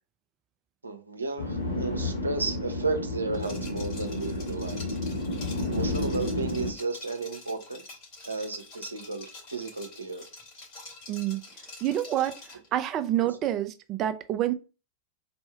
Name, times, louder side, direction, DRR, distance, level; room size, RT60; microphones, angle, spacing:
voice 1, 0.8-5.0 5.6-7.8 8.2-10.2 13.2-13.3, right 3 dB, 80° right, 0.7 m, -33 dB
sound 1, 1.4-6.7, left 1 dB, 75° left, 1.1 m, -31 dB
Liquid, 3.3-12.7, left 2 dB, 45° left, 2.7 m, -47 dB
voice 2, 11.1-11.4 11.8-14.5, right 12 dB, 35° right, 0.5 m, -28 dB
4.2 x 2.6 x 4.7 m
figure-of-eight pair, 90°, 0 cm